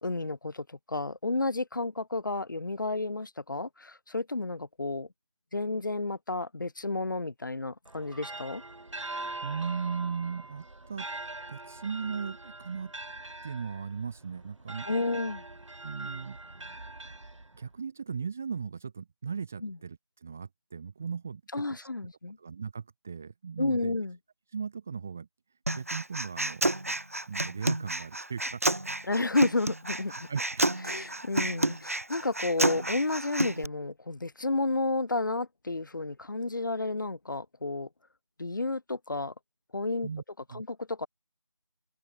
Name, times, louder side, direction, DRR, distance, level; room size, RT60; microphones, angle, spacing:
voice 1, 0.0-5.1 5.5-8.6 14.9-15.4 19.6-19.8 21.5-22.4 23.6-24.2 29.1-30.1 30.9-37.9 38.4-39.3 39.7-40.1 40.5-41.1, left 2 dB, 40° left, 2.8 m, -31 dB
sound 1, 7.8-17.8, right 2 dB, 85° right, 1.9 m, -42 dB
voice 2, 9.4-11.1 11.5-12.9 13.4-14.9 15.8-16.4 17.5-21.4 21.8-21.9 22.4-24.0 24.5-25.3 25.7-26.7 27.3-28.6 30.1-30.7 40.0-40.2 40.5-40.6, right 6 dB, 5° right, 0.9 m, -37 dB
Human voice, 25.7-33.6, right 1 dB, 30° right, 0.6 m, -30 dB
figure-of-eight pair, 175°, 16 cm